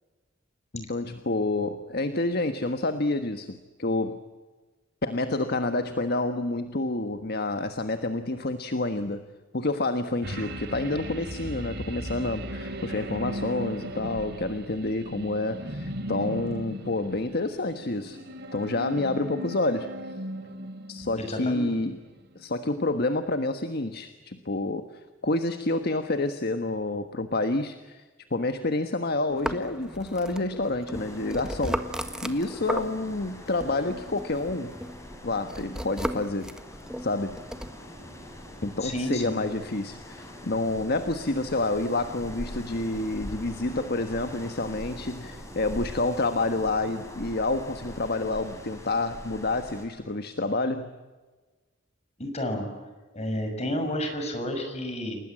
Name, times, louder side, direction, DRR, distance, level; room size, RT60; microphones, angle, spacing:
voice 1, 0.7-4.2 5.0-9.2 9.5-18.2 18.5-19.9 20.9-22.0 22.3-24.9 25.2-28.0 28.3-34.7 35.2-36.5 37.0-37.4 38.6-50.9, left 2 dB, 55° left, 8 dB, 1.4 m, -28 dB
sound 1, 10.2-22.0 22.4-22.5, equal, 60° right, 3.8 m, -37 dB
voice 2, 21.2-21.7 38.8-39.4 52.2-52.7 53.1-55.2, left 1 dB, 35° left, 5 dB, 6.4 m, -31 dB
sound 2, 29.3-33.3 33.6-37.7, equal, 5° right, 1.5 m, -36 dB
sound 3, 30.9-49.8, equal, 15° left, 5.6 m, -43 dB
29.5 x 19.5 x 8.7 m, 1.3 s
head